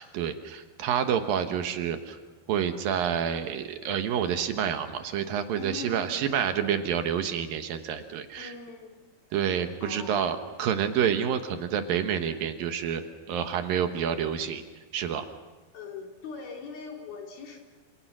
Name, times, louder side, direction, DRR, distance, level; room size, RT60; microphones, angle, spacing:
voice 1, 0.0-2.2 2.5-8.5 9.3-14.6 14.9-15.2, right 8 dB, 70° right, 7 dB, 2.8 m, -28 dB
voice 2, 5.5-6.3 8.4-9.0 9.8-10.5 15.7-17.6, left 4 dB, 70° left, 2 dB, 4.9 m, -41 dB
27.5 x 27.5 x 6.1 m, 1.2 s
omnidirectional pair, 4.5 m